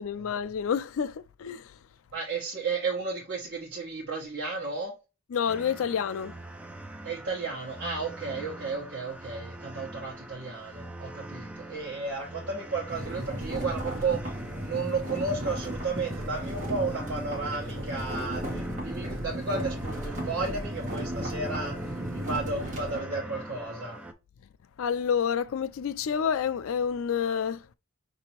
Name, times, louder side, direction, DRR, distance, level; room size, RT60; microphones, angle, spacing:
voice 1, 0.0-1.8 5.3-6.3 24.8-27.6, left 7 dB, 60° left, 0.3 m, -29 dB
voice 2, 2.1-4.9 7.0-14.2 14.6-24.0, right 4 dB, 50° right, 1.2 m, -33 dB
sound 1, 5.5-24.1, right 1 dB, 5° right, 0.4 m, -42 dB
sound 2, 12.9-23.0, equal, 35° right, 1.4 m, -35 dB
5.8 x 2.8 x 2.9 m
head